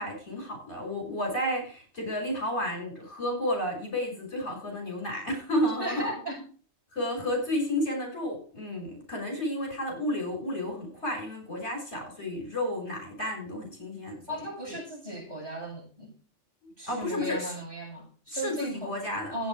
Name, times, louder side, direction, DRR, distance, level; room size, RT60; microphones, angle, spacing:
voice 1, 0.0-6.1 6.9-14.2 14.7-14.8 16.9-17.5 18.3-19.5, left 1 dB, 60° left, 6.3 m, -32 dB
voice 2, 5.8-6.5 14.3-16.1 16.8-19.0 19.3-19.5, equal, 20° right, 7.6 m, -36 dB
14.5 x 9.2 x 4.8 m
omnidirectional pair, 1.3 m